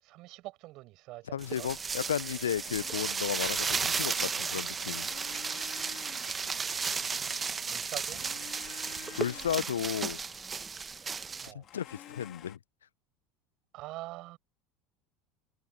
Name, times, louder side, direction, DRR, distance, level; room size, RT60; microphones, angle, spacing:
voice 1, 0.0-1.7 7.1-8.2 11.4-11.6 13.7-14.4, right 19 dB, 50° right, 6.9 m, -45 dB
voice 2, 1.3-5.1 9.1-10.2 11.5-12.6, left 9 dB, 75° left, 1.1 m, -34 dB
sound 1, 1.4-11.5, right 5 dB, 25° right, 1.7 m, -34 dB
Domestic sounds home sounds, 2.6-4.2 4.8-7.6 8.0-11.0 11.6-12.6, left 11 dB, 40° left, 3.8 m, -52 dB
sound 2, 2.8-9.7, right 6 dB, 80° right, 1.7 m, -54 dB
figure-of-eight pair, 70°, 0 cm